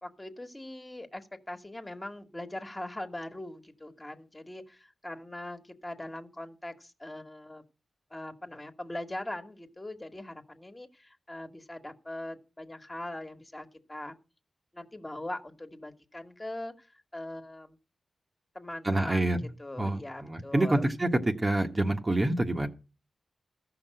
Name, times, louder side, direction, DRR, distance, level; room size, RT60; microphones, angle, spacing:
voice 1, 0.0-7.6 8.1-14.2 14.7-16.9 17.1-17.8 18.6-19.3 19.6-20.8, left 1 dB, 20° left, 6 dB, 1.8 m, -41 dB
voice 2, 18.8-19.4 19.8-22.7, right 1 dB, 30° right, 4 dB, 1.5 m, -27 dB
14.0 x 6.0 x 7.8 m, 0.33 s
cardioid pair, 45°, 0 cm